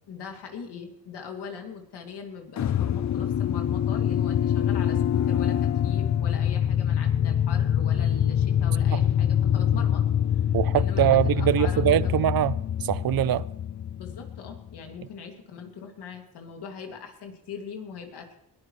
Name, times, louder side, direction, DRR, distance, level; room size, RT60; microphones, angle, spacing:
voice 1, 0.1-10.0 10.3-10.4 10.7-12.1 13.9-18.4, left 6 dB, 80° left, 2.5 m, -41 dB
sound 1, 2.6-14.8, left 9 dB, 45° left, 0.6 m, -25 dB
voice 2, 10.5-13.5, right 12 dB, 60° right, 0.6 m, -23 dB
21.0 x 13.0 x 3.2 m
cardioid pair, 70°, 40 cm